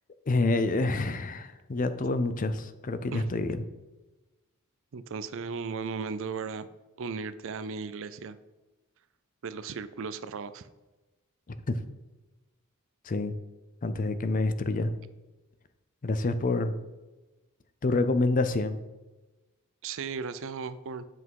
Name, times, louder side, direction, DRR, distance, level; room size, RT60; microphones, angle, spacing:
voice 1, 0.3-3.6 11.7-11.8 13.0-13.3 13.8-14.9 16.0-16.7 17.8-18.8, left 2 dB, 35° left, 11 dB, 0.5 m, -27 dB
voice 2, 4.9-6.7 7.0-8.4 9.4-10.7 19.8-21.0, right 5 dB, 60° right, 14 dB, 0.5 m, -36 dB
7.8 x 5.8 x 4.7 m, 1.1 s
head